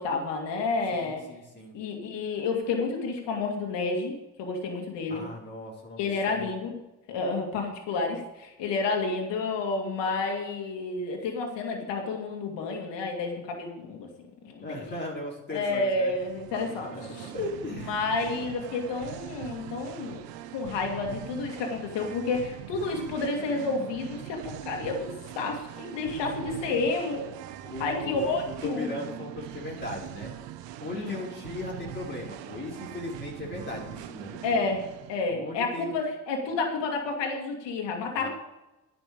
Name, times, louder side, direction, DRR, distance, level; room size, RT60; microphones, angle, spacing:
voice 1, 0.0-1.2 1.7-5.3 6.0-6.8 7.1-14.1 14.4-14.9 15.5-17.3 17.9-20.2 20.5-27.3 27.8-28.9 30.9-31.2 34.4-38.3, left 3 dB, 80° left, 1 dB, 2.3 m, -30 dB
voice 2, 0.9-1.8 5.1-6.0 6.3-6.5 14.6-16.1 16.8-17.9 26.3-26.7 27.7-28.3 28.6-30.3 30.8-34.7 35.3-36.0 38.2-38.3, left 2 dB, 25° left, -4 dB, 4.1 m, -37 dB
Singing, 16.1-35.2, right 12 dB, 80° right, 0.9 m, -42 dB
10.5 x 6.0 x 8.5 m, 0.96 s
supercardioid pair, 70°, 42 cm